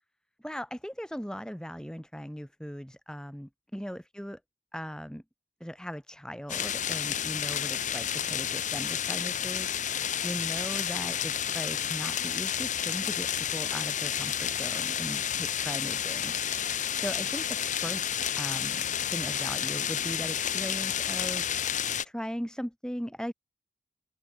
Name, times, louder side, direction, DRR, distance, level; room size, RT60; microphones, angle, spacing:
voice 1, 0.4-4.4 4.7-5.2 5.6-9.8 10.2-16.4 17.0-18.1 18.3-21.4 22.0-23.3, equal, 5° left, 3.8 m, -38 dB
sound 1, 6.5-22.0, left 9 dB, 45° left, 1.4 m, -31 dB
head